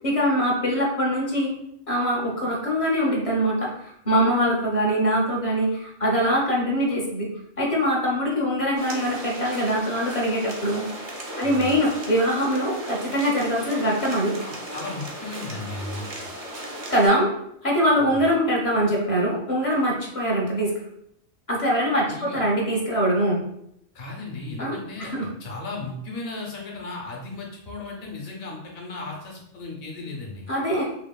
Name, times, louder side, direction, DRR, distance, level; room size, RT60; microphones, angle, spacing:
voice 1, 0.0-1.5 1.9-7.3 7.6-10.8 11.4-14.3 16.9-17.3 17.6-20.7 21.5-23.4 24.6-25.3 30.5-30.9, equal, 40° left, -2 dB, 0.5 m, -23 dB
sound 1, 8.8-17.1, right 1 dB, 45° right, 0.5 m, -36 dB
voice 2, 11.4-11.8 14.4-16.3 18.0-18.2 22.1-22.4 23.9-25.1 25.4-30.5, left 3 dB, 65° left, -1 dB, 1.0 m, -36 dB
2.9 x 2.8 x 2.2 m, 0.77 s
omnidirectional pair, 1.1 m